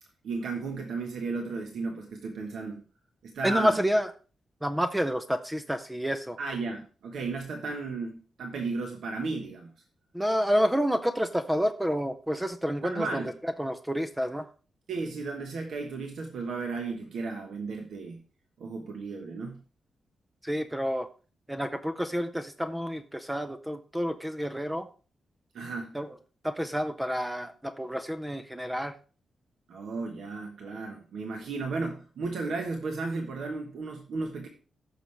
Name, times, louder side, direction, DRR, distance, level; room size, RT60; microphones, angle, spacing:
voice 1, 0.2-2.8 3.2-3.8 6.4-9.7 12.8-13.3 14.9-18.2 18.6-19.6 25.5-25.9 29.7-34.5, right 3 dB, 70° right, 3 dB, 1.2 m, -34 dB
voice 2, 3.4-4.1 4.6-6.4 10.1-14.5 20.4-21.1 21.5-24.9 25.9-26.1 26.4-28.9, equal, 5° right, 9 dB, 0.4 m, -29 dB
15.5 x 6.3 x 3.3 m, 0.38 s
wide cardioid pair, 170°, 0 cm